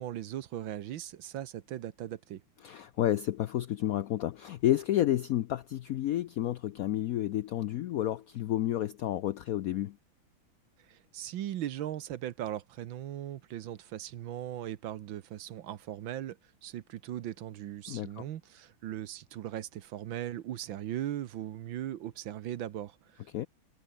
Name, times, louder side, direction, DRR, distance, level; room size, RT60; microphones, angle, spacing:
voice 1, 0.0-2.4 10.8-23.5, right 12 dB, 75° right, 1.7 m, -39 dB
voice 2, 2.6-9.9 17.9-18.1 23.3-23.5, left 13 dB, 85° left, 0.7 m, -30 dB
omnidirectional pair, 2.2 m